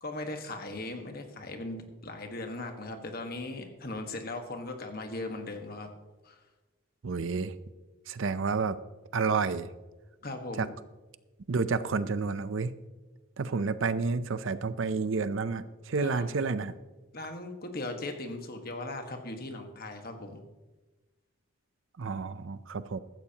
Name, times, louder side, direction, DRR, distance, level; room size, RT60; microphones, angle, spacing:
voice 1, 0.0-5.9 6.2-6.4 10.2-10.7 16.0-16.3 17.1-20.4, left 2 dB, 45° left, 5 dB, 1.5 m, -38 dB
voice 2, 7.0-7.5 8.1-8.8 9.1-9.7 10.6-10.7 11.5-12.7 13.4-16.8 22.0-23.0, right 4 dB, 65° right, 14 dB, 0.5 m, -30 dB
15.5 x 13.0 x 2.9 m, 1.2 s
head